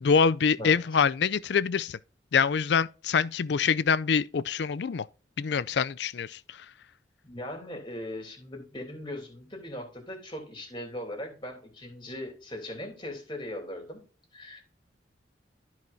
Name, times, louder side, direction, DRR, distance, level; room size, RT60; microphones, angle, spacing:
voice 1, 0.0-2.0 2.3-5.0 5.4-6.4, left 6 dB, 65° left, 0.4 m, -25 dB
voice 2, 7.2-14.0 14.3-14.6, left 1 dB, 25° left, 2.8 m, -39 dB
14.0 x 4.8 x 2.7 m
head